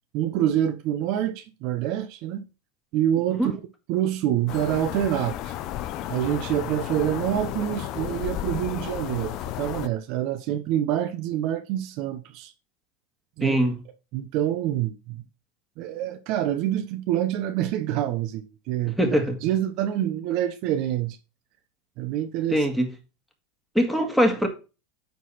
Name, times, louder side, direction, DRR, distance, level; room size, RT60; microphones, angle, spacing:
voice 1, 0.1-2.4 2.9-3.6 3.9-5.5 6.1-12.5 13.4-13.6 14.1-15.2 15.8-19.0 19.4-21.2 22.0-22.7, right 11 dB, 55° right, 0.9 m, -26 dB
sound 1, 4.5-9.9, left 13 dB, 50° left, 0.6 m, -33 dB
voice 2, 13.4-13.7 19.0-19.4 22.5-22.9 23.7-24.5, equal, ahead, 2.0 m, -22 dB
9.5 x 4.1 x 4.2 m
supercardioid pair, 120°, 0 cm